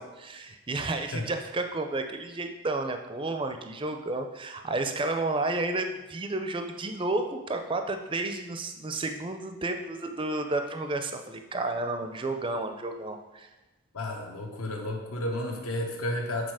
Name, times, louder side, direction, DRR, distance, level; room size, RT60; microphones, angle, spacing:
voice 1, 0.0-13.5, right 2 dB, 20° right, 6 dB, 0.4 m, -31 dB
voice 2, 13.9-16.5, left 1 dB, 80° left, 2 dB, 1.1 m, -32 dB
6.5 x 4.0 x 4.8 m, 1.1 s
head